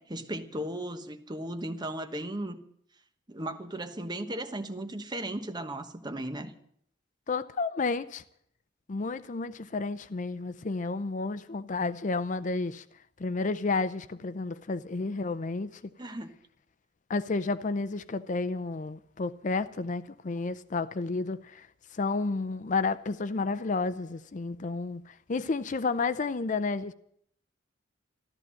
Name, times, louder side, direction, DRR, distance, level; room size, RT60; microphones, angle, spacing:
voice 1, 0.0-2.6 3.3-6.5 16.0-16.3, right 1 dB, 25° right, 1.1 m, -36 dB
voice 2, 7.3-8.2 8.9-12.8 13.2-15.8 17.1-21.7 21.9-26.9, left 3 dB, 40° left, 0.5 m, -31 dB
14.0 x 13.0 x 7.7 m
head